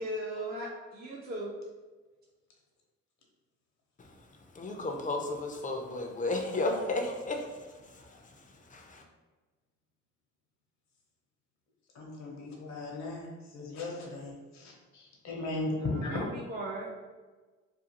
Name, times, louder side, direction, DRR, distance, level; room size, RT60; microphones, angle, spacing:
voice 1, 0.0-1.5 16.0-16.9, right 1 dB, 30° right, -4 dB, 0.4 m, -37 dB
voice 2, 4.5-7.5 7.9-9.0, left 2 dB, 25° left, 2 dB, 0.4 m, -34 dB
voice 3, 11.9-16.2, left 2 dB, 65° left, -2 dB, 0.8 m, -37 dB
2.5 x 2.3 x 2.8 m, 1.3 s
cardioid pair, 90°, 30 cm